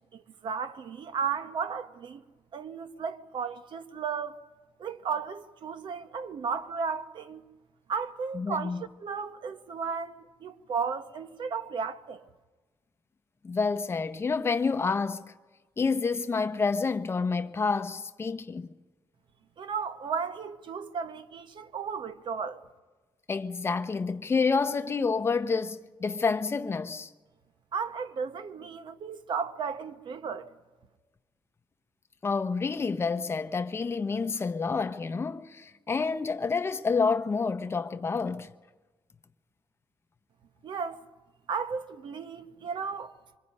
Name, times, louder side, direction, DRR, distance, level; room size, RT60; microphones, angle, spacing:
voice 1, 0.1-2.2 2.5-4.4 4.8-7.4 7.9-8.7 9.0-12.2 19.6-22.6 27.7-30.5 40.6-41.0 41.5-43.1, right 6 dB, 60° right, 1.0 m, -34 dB
voice 2, 8.3-8.9 13.4-15.3 15.8-18.7 23.3-27.1 32.2-38.5, left 4 dB, 25° left, 0.8 m, -28 dB
26.0 x 23.0 x 5.4 m
cardioid pair, 125°, 9 cm